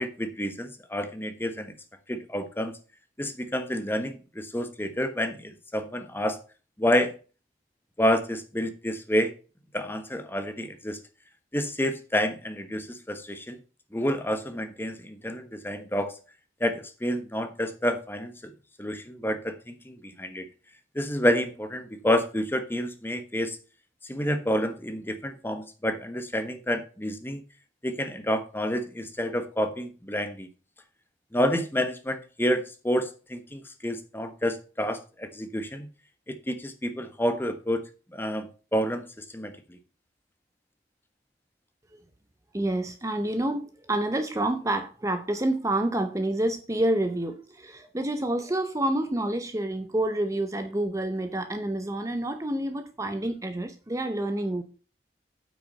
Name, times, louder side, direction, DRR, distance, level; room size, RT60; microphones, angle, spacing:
voice 1, 0.0-1.7 2.1-2.7 3.2-6.4 6.8-7.1 8.0-9.3 9.7-11.0 11.5-13.6 13.9-16.2 16.6-18.5 18.8-20.5 20.9-23.6 24.1-27.4 27.8-30.5 31.3-35.9 36.3-37.8 38.1-39.8, equal, 10° left, 1.1 m, -29 dB
voice 2, 42.5-54.6, right 1 dB, 20° right, 0.7 m, -28 dB
8.5 x 6.2 x 5.3 m
head